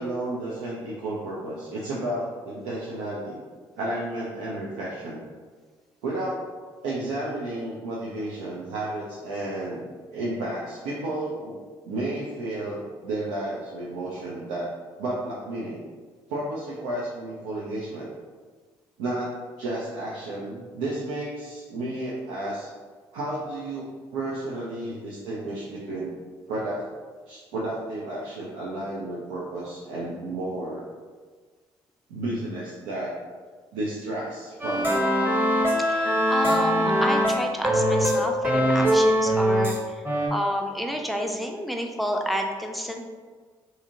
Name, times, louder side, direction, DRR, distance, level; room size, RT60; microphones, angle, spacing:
voice 1, 0.0-3.4 3.8-5.2 6.0-6.5 6.8-11.6 11.8-14.7 15.0-15.8 16.3-18.1 19.0-22.7 23.1-26.1 26.5-26.9 27.3-30.8 32.1-33.1 33.7-35.0, right 1 dB, 80° right, -6 dB, 0.4 m, -32 dB
sound 1, 34.6-39.8 40.0-40.3, equal, 15° right, 0.9 m, -22 dB
voice 2, 35.9-40.0 40.3-43.0, equal, ahead, 2 dB, 0.4 m, -29 dB
2.7 x 2.6 x 2.5 m, 1.5 s
hypercardioid pair, 45°, 12 cm